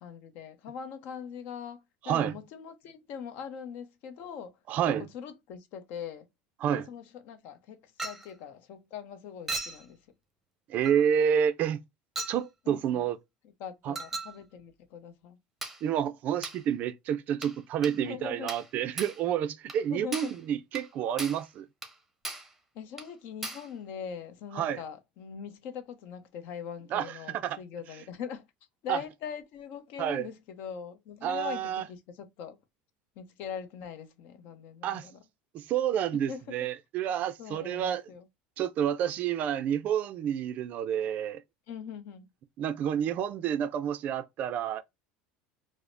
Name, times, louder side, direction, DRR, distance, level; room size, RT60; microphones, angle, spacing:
voice 1, 0.0-6.3 6.7-10.0 12.6-13.1 13.4-15.4 18.0-18.5 19.9-20.3 22.7-28.5 28.8-32.6 33.2-35.2 36.1-36.4 37.4-38.3 41.7-42.3, left 7 dB, 60° left, 0.7 m, -42 dB
voice 2, 4.7-5.0 6.6-6.9 10.7-11.8 12.3-13.2 13.9-14.0 15.8-21.7 24.6-24.8 26.9-27.1 27.4-27.6 28.9-29.0 30.0-30.3 31.2-31.8 34.8-35.1 35.5-38.0 38.6-41.4 42.6-44.8, right 9 dB, 45° right, 0.4 m, -29 dB
Chink clink, 8.0-8.3 9.5-9.8 10.8-11.0 12.2-12.4 13.9-14.4 15.6-15.8 16.4-16.6 17.4-17.6 17.8-18.0 18.5-18.7 19.0-19.2 19.7-19.8 20.1-20.4 20.7-20.9 21.2-21.5 21.8-22.0 22.2-22.5 23.0-23.1 23.4-23.7, right 2 dB, 5° right, 0.7 m, -37 dB
4.9 x 2.0 x 2.5 m
cardioid pair, 140°, 4 cm